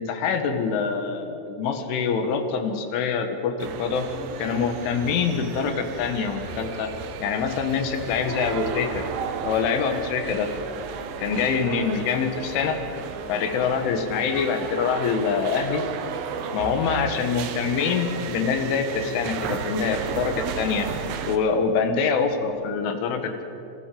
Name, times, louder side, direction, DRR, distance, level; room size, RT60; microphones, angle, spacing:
voice 1, 0.0-4.1 4.4-6.9 7.2-9.1 9.4-10.5 11.2-12.8 13.3-15.8 16.5-20.9 21.3-23.4, left 6 dB, 75° left, 6 dB, 4.0 m, -25 dB
sound 1, 3.6-21.4, right 7 dB, 70° right, 2.3 m, -34 dB
27.0 x 15.0 x 7.8 m, 2.9 s
omnidirectional pair, 5.8 m